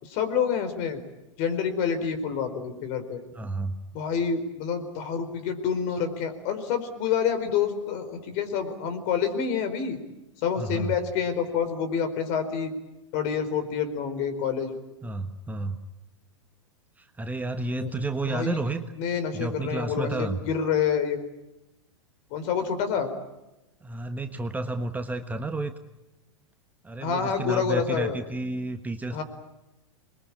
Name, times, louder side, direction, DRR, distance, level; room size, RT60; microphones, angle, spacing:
voice 1, 0.0-1.0 1.4-3.2 3.9-10.0 10.4-12.7 13.1-14.8 17.8-17.9 18.3-18.6 19.0-21.2 22.3-23.1 27.0-28.2 29.1-29.2, left 7 dB, 45° left, 10 dB, 4.6 m, -27 dB
voice 2, 3.3-3.8 10.6-10.9 15.0-15.8 17.0-18.8 19.3-20.4 23.8-25.7 26.8-29.2, right 2 dB, 10° right, 7 dB, 1.4 m, -31 dB
27.0 x 22.0 x 8.7 m, 0.96 s
hypercardioid pair, 105°, 16 cm